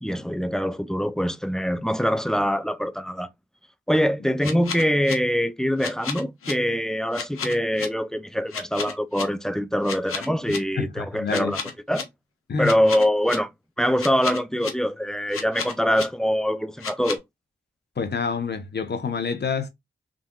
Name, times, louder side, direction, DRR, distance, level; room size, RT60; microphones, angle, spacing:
voice 1, 0.0-3.3 3.9-11.6 11.9-12.1 12.6-13.5 13.8-17.2, equal, 5° left, 0.4 m, -24 dB
sound 1, 4.4-5.1 5.8-6.5 7.1-7.9 8.5-9.2 9.8-10.6 11.3-12.0 12.6-13.4 14.0-14.7 15.3-16.0 16.8-17.2, left 6 dB, 90° left, 0.7 m, -32 dB
voice 2, 10.8-11.6 12.5-12.7 18.0-19.7, left 5 dB, 55° left, 0.8 m, -27 dB
3.6 x 2.6 x 2.2 m
cardioid pair, 40°, 21 cm